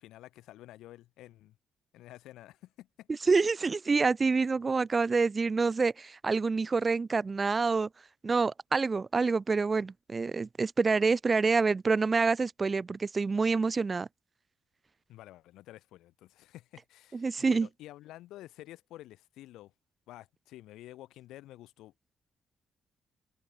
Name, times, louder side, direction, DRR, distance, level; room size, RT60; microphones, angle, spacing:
voice 1, 0.0-1.6 1.9-3.4 15.1-19.7 20.1-21.9, left 15 dB, 90° left, 5.3 m, -50 dB
voice 2, 3.3-7.9 8.2-14.1 17.1-17.7, right 4 dB, 30° right, 0.4 m, -27 dB
cardioid pair, 90°, 0 cm